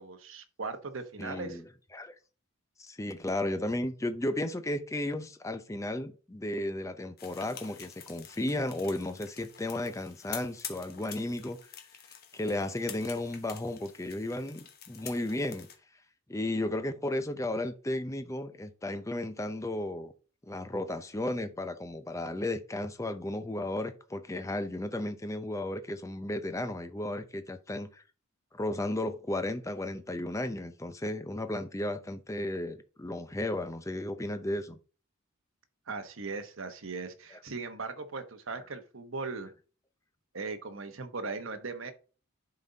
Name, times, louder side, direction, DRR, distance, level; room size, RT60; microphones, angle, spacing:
voice 1, 0.0-1.6 35.9-39.5 40.3-41.9, right 4 dB, 70° right, 1.1 m, -38 dB
voice 2, 1.2-1.6 1.9-2.1 2.8-11.6 12.3-15.7 16.3-20.1 20.5-28.0 28.5-34.8, left 1 dB, 15° left, 0.6 m, -34 dB
sound 1, 7.2-15.8, left 8 dB, 45° left, 1.1 m, -47 dB
11.0 x 4.1 x 3.9 m
head